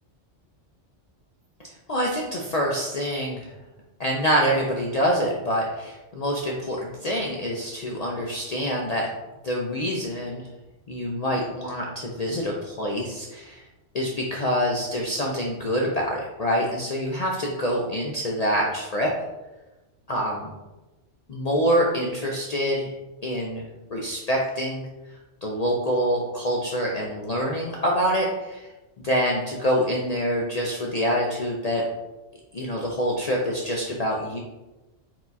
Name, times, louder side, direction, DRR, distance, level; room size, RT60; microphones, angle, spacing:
voice 1, 1.6-3.5 4.0-9.1 9.4-10.5 10.9-13.6 13.9-19.1 20.1-20.5 21.3-22.9 23.2-23.6 23.9-24.9 25.4-28.7 29.0-31.8 32.5-34.4, equal, 50° left, -2 dB, 0.4 m, -26 dB
4.5 x 2.3 x 4.0 m, 1.0 s
omnidirectional pair, 1.2 m